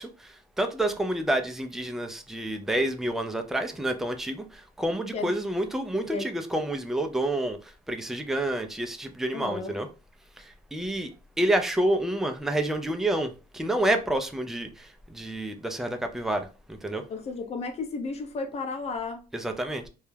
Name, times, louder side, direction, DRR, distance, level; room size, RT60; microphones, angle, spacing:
voice 1, 0.0-9.9 10.4-11.1 11.4-17.1 19.3-19.9, right 1 dB, ahead, 0.3 m, -29 dB
voice 2, 9.3-9.7 17.1-19.2, left 4 dB, 40° left, 0.6 m, -33 dB
2.3 x 2.0 x 3.1 m
cardioid pair, 110°, 17 cm